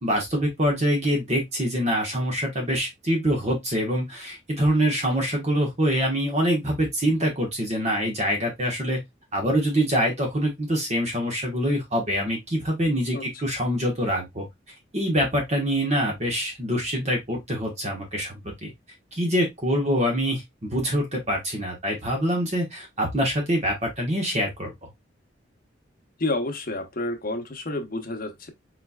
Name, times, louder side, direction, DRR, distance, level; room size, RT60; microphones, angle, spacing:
voice 1, 0.0-9.0 9.3-14.5 14.9-18.7 19.1-24.7, equal, 35° right, 1.4 m, -25 dB
voice 2, 26.2-28.5, left 2 dB, 50° left, 1.0 m, -29 dB
4.3 x 4.3 x 2.3 m
head